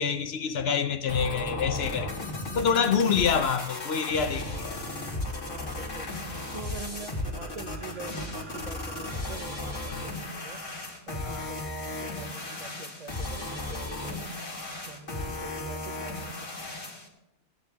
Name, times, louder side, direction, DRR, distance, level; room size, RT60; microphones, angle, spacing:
voice 1, 0.0-2.1 2.5-4.8 9.9-10.0 11.2-11.5, left 6 dB, 60° left, 0.9 m, -27 dB
sound 1, 1.1-17.1, left 2 dB, 90° left, 2.4 m, -35 dB
voice 2, 5.4-6.1 6.5-10.6 11.1-11.6 11.9-14.1 14.9-16.7, right 4 dB, 35° right, 0.8 m, -44 dB
sound 2, 5.9-10.7, right 3 dB, 85° right, 5.4 m, -53 dB
15.5 x 9.7 x 3.5 m
omnidirectional pair, 1.3 m